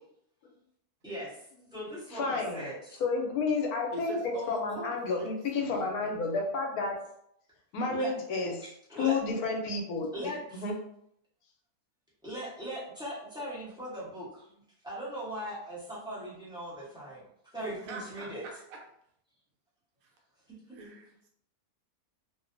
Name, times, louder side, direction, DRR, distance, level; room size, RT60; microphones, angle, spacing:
voice 1, 1.0-1.3 1.7-3.0 7.9-8.1 8.9-9.2 10.1-10.6 12.2-17.2 17.5-18.4, equal, 5° right, -9 dB, 0.6 m, -39 dB
voice 2, 2.1-2.7 3.0-7.0 7.7-10.1 10.5-10.8, left 3 dB, 85° left, 1 dB, 1.1 m, -31 dB
voice 3, 3.9-6.2 17.6-18.8 20.7-21.3, right 2 dB, 75° right, 0 dB, 1.0 m, -43 dB
2.6 x 2.2 x 2.5 m, 0.71 s
omnidirectional pair, 1.6 m